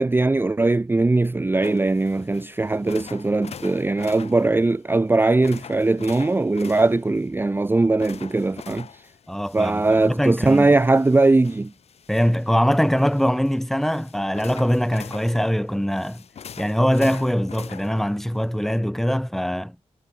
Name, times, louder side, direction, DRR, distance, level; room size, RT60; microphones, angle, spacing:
voice 1, 0.0-8.9 9.5-11.7, right 2 dB, 20° right, 0.6 m, -20 dB
sound 1, 1.6-18.8, left 7 dB, 75° left, 2.5 m, -44 dB
voice 2, 9.3-10.7 12.1-16.2 16.6-19.8, equal, 5° left, 1.2 m, -22 dB
cardioid pair, 70°, 11 cm